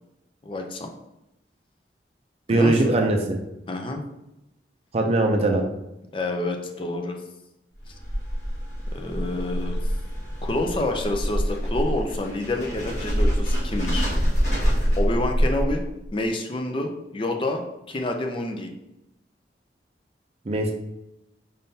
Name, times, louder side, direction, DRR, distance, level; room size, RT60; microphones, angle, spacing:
voice 1, 0.4-0.9 2.5-2.9 3.7-4.0 6.1-7.2 8.9-9.8 10.4-14.1 15.0-18.7 20.5-20.7, left 2 dB, 30° left, 3 dB, 0.5 m, -28 dB
voice 2, 2.5-3.4 4.9-5.6 20.5-20.7, right 2 dB, 35° right, 3 dB, 0.4 m, -21 dB
sound 1, 7.8-16.1, equal, 45° left, 1.5 m, -25 dB
5.4 x 3.6 x 2.7 m, 0.90 s
head